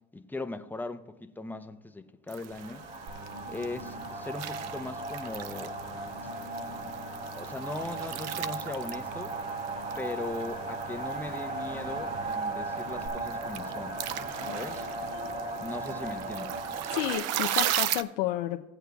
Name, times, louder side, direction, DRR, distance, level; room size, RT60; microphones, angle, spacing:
voice 1, 0.1-2.8 3.5-5.8 7.3-9.4 10.0-14.0 14.5-14.9 15.6-16.6, left 2 dB, 5° left, 0.6 m, -39 dB
sound 1, 2.3-18.0, right 12 dB, 60° right, 0.6 m, -38 dB
sound 2, 2.5-17.2, right 2 dB, 35° right, 2.1 m, -37 dB
sound 3, 3.1-13.1, right 1 dB, 75° right, 1.9 m, -48 dB
voice 2, 14.7-15.4 16.9-18.7, left 15 dB, 90° left, 0.6 m, -32 dB
17.0 x 7.9 x 2.3 m
supercardioid pair, 100°, 29 cm